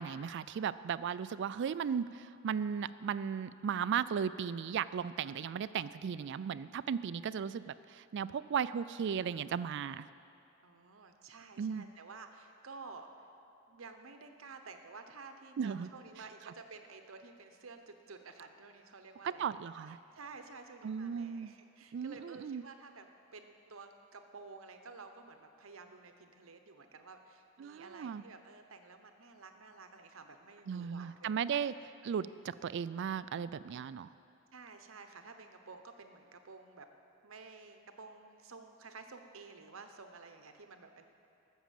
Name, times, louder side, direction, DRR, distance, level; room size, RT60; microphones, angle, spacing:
voice 1, 0.0-10.1 11.6-11.9 15.6-15.9 19.2-20.0 20.8-21.5 21.9-22.6 27.6-28.2 30.7-31.7 32.0-34.1, right 7 dB, 60° right, 16 dB, 0.3 m, -36 dB
voice 2, 10.6-13.1 13.7-19.6 19.9-23.1 23.3-31.7 34.5-36.9 37.2-41.0, right 4 dB, 80° right, 7 dB, 0.9 m, -52 dB
12.5 x 7.2 x 7.5 m, 2.6 s
head